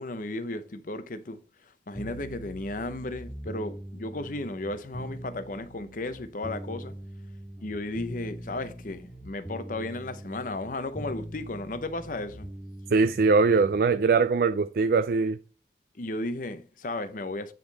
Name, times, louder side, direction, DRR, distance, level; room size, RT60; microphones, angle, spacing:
voice 1, 0.0-1.4 1.9-6.9 7.6-12.5 15.9-17.5, left 2 dB, 50° left, 0.7 m, -34 dB
sound 1, 1.9-13.8, right 1 dB, 15° right, 1.8 m, -42 dB
voice 2, 12.9-15.4, right 4 dB, 55° right, 0.4 m, -22 dB
10.0 x 3.8 x 4.0 m
head